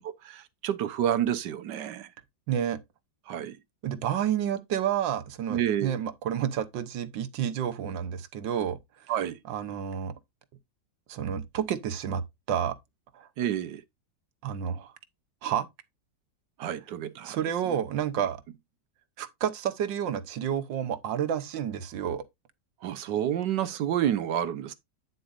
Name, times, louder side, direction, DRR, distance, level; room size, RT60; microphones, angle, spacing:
voice 1, 0.2-2.1 3.3-3.6 5.5-6.0 9.1-9.4 13.4-13.8 16.6-17.4 22.8-24.7, right 10 dB, 75° right, 1.5 m, -29 dB
voice 2, 2.5-2.8 3.8-8.8 9.5-10.1 11.1-12.2 12.5-12.8 13.1-13.3 14.4-14.9 15.4-15.7 17.2-18.4 19.2-22.2, right 9 dB, 90° right, 1.7 m, -30 dB
9.2 x 8.0 x 2.5 m
omnidirectional pair, 2.0 m